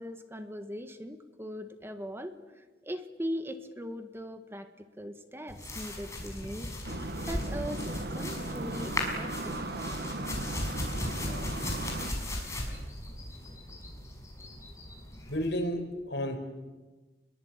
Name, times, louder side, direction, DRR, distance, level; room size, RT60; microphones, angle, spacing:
voice 1, 0.0-4.7 5.0-6.7 7.0-9.7, equal, 15° right, 8 dB, 1.6 m, -40 dB
sound 1, 5.5-15.5, left 1 dB, 15° left, 6.0 m, -37 dB
sound 2, 6.8-12.1, right 1 dB, 65° right, 1.8 m, -37 dB
voice 2, 15.3-16.4, equal, 85° left, 4 dB, 5.5 m, -31 dB
27.5 x 22.5 x 9.1 m, 1.2 s
head